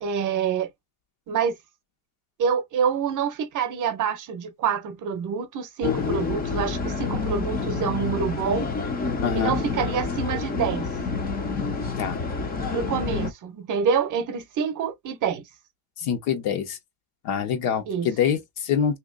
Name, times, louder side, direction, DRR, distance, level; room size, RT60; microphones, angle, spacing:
voice 1, 0.0-0.7 1.3-1.5 2.4-8.7 9.3-11.0 12.7-15.4 17.9-18.1, right 7 dB, 40° right, 0.7 m, -26 dB
sound 1, 5.8-13.3, left 4 dB, 20° left, 0.5 m, -28 dB
voice 2, 9.2-9.5 12.0-12.2 16.0-16.8 17.2-19.0, left 8 dB, 80° left, 1.3 m, -25 dB
2.8 x 2.7 x 3.7 m
cardioid pair, 155°, 47 cm